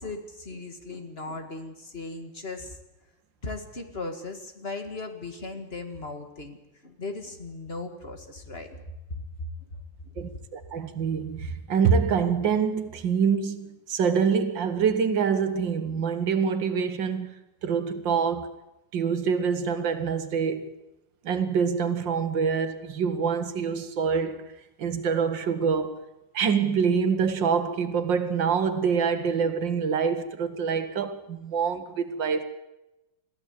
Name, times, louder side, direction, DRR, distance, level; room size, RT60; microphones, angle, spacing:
voice 1, 0.0-2.8 3.4-6.6 6.8-8.8 9.1-9.8, left 3 dB, 35° left, 1.9 m, -37 dB
voice 2, 10.2-17.3 17.6-18.6 18.9-20.8 21.2-24.5 24.8-26.0 26.3-32.4, right 6 dB, 80° right, 2.1 m, -25 dB
22.0 x 15.0 x 8.2 m
omnidirectional pair, 2.0 m